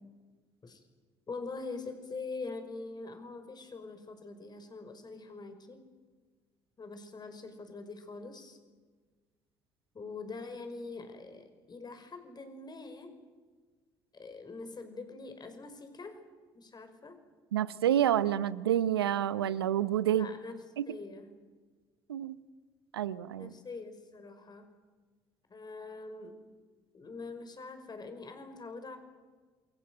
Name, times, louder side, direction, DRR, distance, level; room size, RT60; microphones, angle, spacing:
voice 1, 1.3-5.8 6.8-8.6 9.9-13.1 14.1-16.2 16.5-17.2 20.1-20.6 20.9-21.3 23.4-24.7 25.5-26.4 26.9-29.0, left 3 dB, 35° left, 8 dB, 5.6 m, -44 dB
voice 2, 17.5-20.3 20.8-20.9 22.1-22.4 22.9-23.5, right 11 dB, 90° right, 17 dB, 0.7 m, -28 dB
28.5 x 22.5 x 8.0 m, 1.4 s
hypercardioid pair, 55°, 12 cm